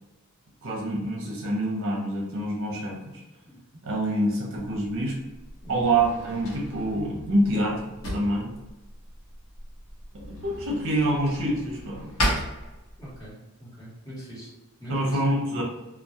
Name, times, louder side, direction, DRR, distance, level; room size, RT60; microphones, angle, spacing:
voice 1, 0.6-3.2 3.8-5.2 5.7-8.5 10.1-12.1 14.9-15.6, right 1 dB, 60° right, -2 dB, 0.7 m, -26 dB
Drawer open or close, 4.6-13.3, equal, 70° left, 0.7 m, -35 dB
voice 2, 13.0-14.5 14.8-15.2, right 1 dB, 15° left, -8 dB, 1.0 m, -41 dB
2.2 x 2.0 x 2.7 m, 1.1 s
head